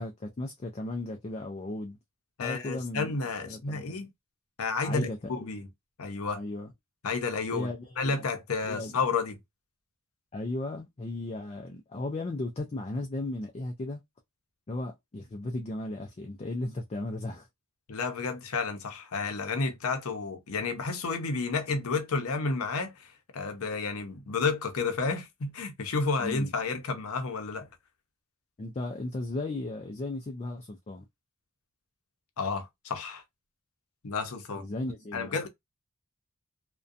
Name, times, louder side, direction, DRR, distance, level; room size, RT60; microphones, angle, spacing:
voice 1, 0.0-2.0 2.4-3.1 3.4-4.0 4.8-5.6 6.3-6.7 7.5-8.2 8.6-8.9 10.3-14.0 14.7-17.5 26.2-26.5 28.6-31.0 34.6-35.4, left 2 dB, 30° left, 0.4 m, -35 dB
voice 2, 2.4-4.1 4.6-5.7 6.0-6.4 7.0-7.7 8.0-9.4 17.9-27.7 32.4-33.2 34.0-34.7 35.1-35.5, left 4 dB, 70° left, 0.6 m, -31 dB
2.6 x 2.2 x 2.4 m
head